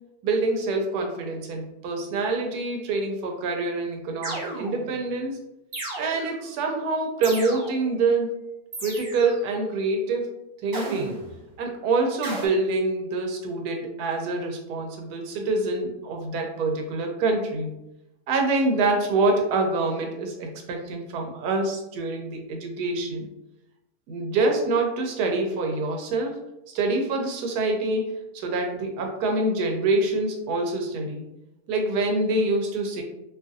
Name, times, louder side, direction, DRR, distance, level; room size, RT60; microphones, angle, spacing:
voice 1, 0.2-5.4 6.0-8.3 8.8-10.3 10.6-11.2 11.6-17.7 18.3-23.3 24.1-26.4 26.7-31.3 31.7-33.0, right 3 dB, 90° right, 2 dB, 1.2 m, -26 dB
sound 1, 4.2-5.0 5.7-6.4 7.2-7.9 8.7-9.4 10.7-11.3 12.2-12.5, right 2 dB, 60° right, 1.2 m, -35 dB
2.8 x 2.4 x 2.5 m, 0.89 s
omnidirectional pair, 1.6 m